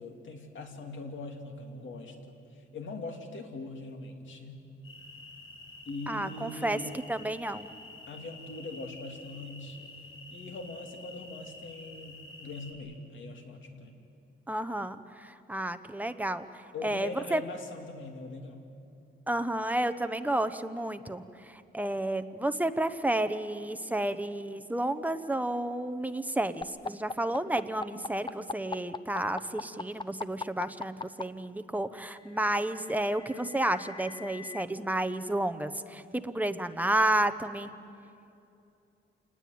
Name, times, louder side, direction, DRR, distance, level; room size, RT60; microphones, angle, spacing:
voice 1, 0.0-4.6 5.9-7.0 8.1-10.0 10.3-14.0 16.7-18.6, left 2 dB, 65° left, 4 dB, 2.8 m, -42 dB
sound 1, 4.8-12.7, left 2 dB, 85° left, 6.2 m, -49 dB
voice 2, 6.1-6.8 7.1-7.7 14.5-17.4 19.3-37.7, right 1 dB, 5° right, 9 dB, 0.8 m, -31 dB
sound 2, 26.6-31.2 32.4-34.6, left 4 dB, 20° left, 0.6 m, -39 dB
27.5 x 20.0 x 9.3 m, 2.7 s
wide cardioid pair, 170°, 21 cm